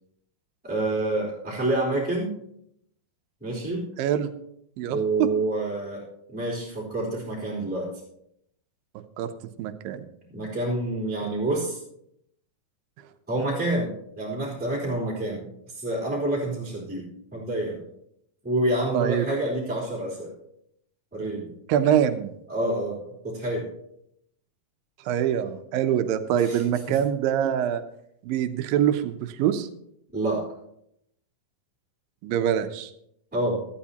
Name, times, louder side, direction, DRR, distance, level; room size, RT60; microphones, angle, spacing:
voice 1, 0.6-2.3 3.4-3.9 4.9-6.0 6.3-7.9 10.3-11.8 13.3-15.5 15.7-17.8 18.4-20.3 21.1-21.5 22.5-23.7 26.4-26.6 26.9-27.0 30.1-30.4 33.3-33.6, right 2 dB, 5° right, -6 dB, 3.2 m, -28 dB
voice 2, 4.0-4.3 4.8-5.3 9.2-9.3 9.6-10.0 18.9-19.3 21.7-22.3 25.1-27.8 28.2-29.7 32.2-32.9, right 10 dB, 80° right, 9 dB, 2.4 m, -24 dB
17.5 x 12.5 x 2.9 m, 0.75 s
omnidirectional pair, 4.2 m